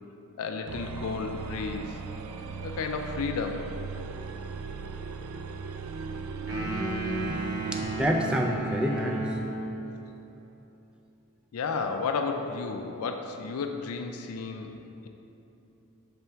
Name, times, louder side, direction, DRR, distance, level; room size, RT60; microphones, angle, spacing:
voice 1, 0.4-2.0 2.6-3.6 9.8-10.0 11.5-14.7, left 4 dB, 80° left, 5 dB, 0.4 m, -32 dB
sound 1, 0.7-8.2, right 5 dB, 85° right, 0.4 m, -37 dB
voice 2, 6.5-7.4 7.7-9.3, equal, 5° right, 1 dB, 0.4 m, -29 dB
sound 2, 6.5-9.8, right 2 dB, 55° right, 1.1 m, -34 dB
6.8 x 3.4 x 4.4 m, 2.9 s
head